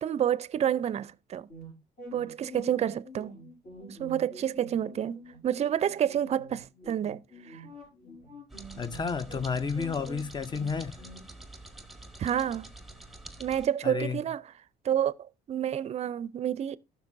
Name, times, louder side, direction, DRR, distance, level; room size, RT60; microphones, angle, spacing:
voice 1, 0.0-1.5 2.1-3.3 3.9-7.2 7.5-7.6 12.2-12.7 13.4-14.4 14.8-15.1 15.5-16.8, right 10 dB, 40° right, 0.5 m, -29 dB
sound 1, 1.5-11.2, equal, 60° left, 5.7 m, -47 dB
sound 2, 8.5-13.7, right 2 dB, ahead, 1.0 m, -47 dB
voice 2, 8.8-11.0 13.8-14.2, left 5 dB, 25° left, 0.6 m, -31 dB
15.0 x 6.2 x 2.6 m
cardioid pair, 110°, 17 cm